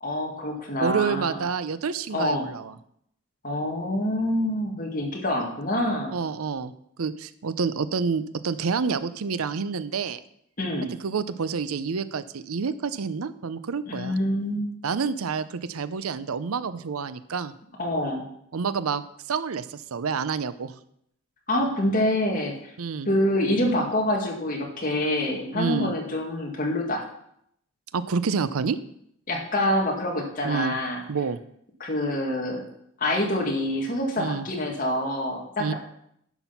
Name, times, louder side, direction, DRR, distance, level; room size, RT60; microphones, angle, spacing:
voice 1, 0.0-1.4 2.1-2.5 3.4-6.1 10.6-10.9 13.9-14.7 17.8-18.3 21.5-22.7 23.1-27.0 29.3-31.0 31.8-32.6 33.0-35.7, left 1 dB, 40° left, 0 dB, 2.0 m, -26 dB
voice 2, 0.8-2.8 6.1-6.7 7.0-10.2 11.0-14.2 14.8-17.5 18.5-20.7 22.8-23.1 25.5-25.9 27.9-28.8 30.4-30.8 31.1-31.4 34.2-34.5 35.6-35.7, right 5 dB, 85° right, 14 dB, 0.6 m, -28 dB
11.0 x 6.0 x 5.8 m, 0.72 s
head